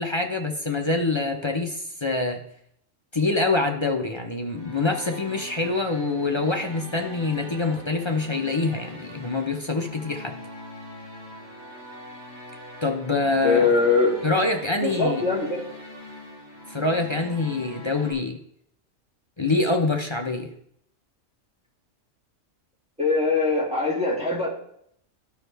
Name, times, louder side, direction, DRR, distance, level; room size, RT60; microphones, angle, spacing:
voice 1, 0.0-2.4 3.1-10.3 12.8-13.7 14.2-15.2 16.7-18.4 19.4-20.5, left 3 dB, 30° left, 2 dB, 0.5 m, -25 dB
sound 1, 4.4-18.1, equal, 55° right, 3.2 m, -42 dB
voice 2, 13.4-14.1 14.8-15.7 23.0-24.5, left 4 dB, 5° right, -5 dB, 2.5 m, -22 dB
13.5 x 4.6 x 3.4 m, 0.69 s
omnidirectional pair, 1.3 m